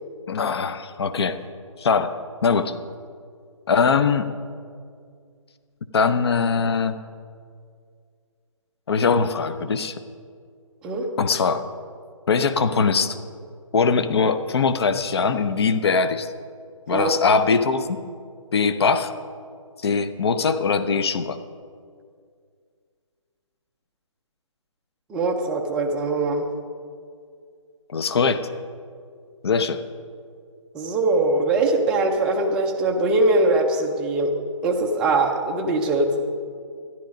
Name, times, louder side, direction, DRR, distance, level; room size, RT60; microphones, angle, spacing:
voice 1, 0.3-1.4 1.8-2.7 3.7-4.3 5.9-7.0 8.9-10.0 11.2-11.7 12.3-13.2 13.7-16.3 16.9-18.0 18.5-19.1 19.8-21.4 27.9-28.5 29.4-29.8, left 5 dB, 50° left, 11 dB, 0.8 m, -21 dB
voice 2, 25.1-26.5 30.7-34.3 34.6-36.2, right 2 dB, 5° right, 1 dB, 0.4 m, -22 dB
13.0 x 11.0 x 5.1 m, 2.2 s
hypercardioid pair, 155°, 17 cm